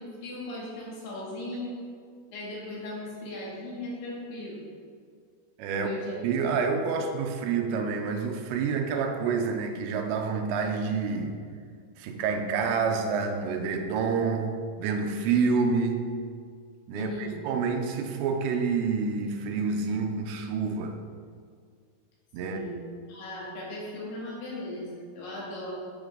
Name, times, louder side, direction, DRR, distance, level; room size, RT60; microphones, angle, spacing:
voice 1, 0.0-1.7 2.3-4.6 5.7-6.3 16.9-17.4 22.4-22.8 23.1-25.7, left 1 dB, 90° left, -6 dB, 4.6 m, -37 dB
voice 2, 5.6-5.9 6.2-11.4 12.0-16.1 16.9-21.0 22.3-22.6, right 5 dB, 90° right, 5 dB, 2.9 m, -28 dB
12.0 x 6.3 x 3.8 m, 2.1 s
omnidirectional pair, 5.1 m